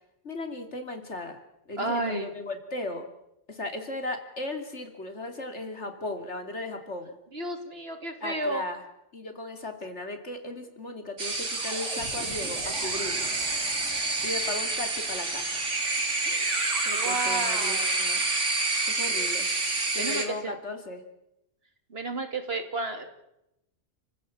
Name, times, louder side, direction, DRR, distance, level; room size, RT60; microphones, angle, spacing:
voice 1, 0.2-1.4 1.7-3.1 3.5-7.1 8.2-8.8 9.1-13.3 14.2-15.6 16.2-18.2 18.9-19.5 19.9-21.0, left 2 dB, 70° left, 6 dB, 3.3 m, -36 dB
voice 2, 1.8-2.3 7.3-8.6 16.9-18.0 20.0-20.5 21.9-23.1, right 2 dB, 55° right, 7 dB, 2.8 m, -32 dB
sound 1, 11.2-20.3, right 3 dB, 85° right, 3.2 m, -28 dB
30.0 x 15.5 x 8.6 m, 0.87 s
omnidirectional pair, 1.2 m